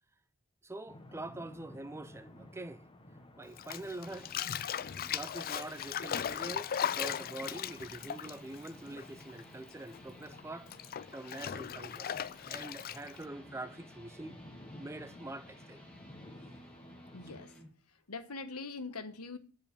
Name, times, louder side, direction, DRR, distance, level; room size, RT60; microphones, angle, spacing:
voice 1, 0.6-2.8 3.4-4.3 4.8-10.7 11.1-12.1 12.5-14.4 14.8-15.8, right 2 dB, 10° right, 0.5 m, -44 dB
sound 1, 0.9-17.5, left 1 dB, 25° left, 1.2 m, -54 dB
Bathtub (filling or washing), 3.6-9.4 9.7-13.2, left 9 dB, 40° left, 0.4 m, -38 dB
sound 2, 3.9-17.7, equal, 5° left, 1.8 m, -58 dB
voice 2, 17.1-19.4, left 3 dB, 75° left, 1.3 m, -43 dB
7.5 x 7.3 x 8.4 m
head